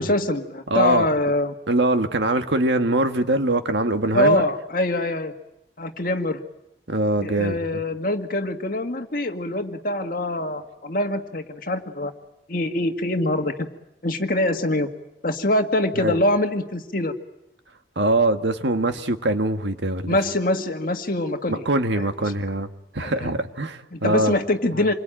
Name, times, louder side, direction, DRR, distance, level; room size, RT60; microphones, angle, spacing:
voice 1, 0.0-1.6 4.1-5.3 5.8-6.4 7.2-12.1 12.5-13.7 14.0-14.9 15.2-17.1 20.1-21.6 21.9-22.1 23.0-23.3 23.9-24.9, left 1 dB, 50° left, 5 dB, 2.0 m, -24 dB
voice 2, 0.7-1.1 1.7-4.4 6.9-7.6 16.0-16.2 18.0-20.2 21.5-22.7 22.9-24.4, right 2 dB, 80° right, 7 dB, 1.8 m, -22 dB
27.5 x 22.5 x 9.1 m, 0.87 s
head